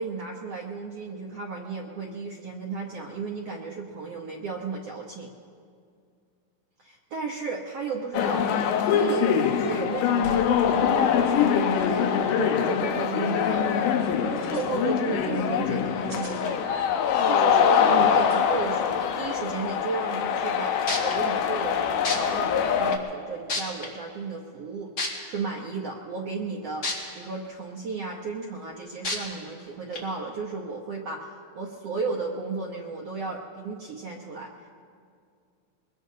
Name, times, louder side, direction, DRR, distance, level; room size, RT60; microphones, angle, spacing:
voice 1, 0.0-5.3 6.8-16.9 17.2-25.0 25.2-34.7, right 4 dB, 75° right, -1 dB, 1.4 m, -34 dB
sound 1, 8.1-23.0, left 8 dB, 75° left, 2.2 m, -24 dB
sound 2, 12.7-12.8 13.0-13.3 14.2-14.7 15.8-16.4 18.1-18.4, right 2 dB, 45° right, 5.2 m, -47 dB
sound 3, 20.9-21.1 22.0-22.2 22.9-23.0 23.5-23.9 25.0-25.1 26.8-26.9 27.4-27.5 29.0-29.2 29.9-30.0, left 3 dB, 35° left, 2.1 m, -27 dB
23.0 x 22.0 x 2.8 m, 2.3 s
omnidirectional pair, 4.2 m